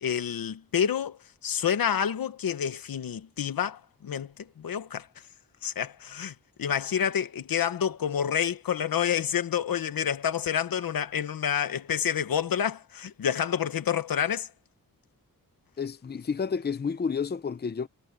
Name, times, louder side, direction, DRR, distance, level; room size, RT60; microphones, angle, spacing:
voice 1, 0.0-5.1 5.6-14.5, left 8 dB, 90° left, 1.3 m, -28 dB
voice 2, 15.8-17.9, left 6 dB, 30° left, 0.7 m, -30 dB
wide cardioid pair, 145°, 34 cm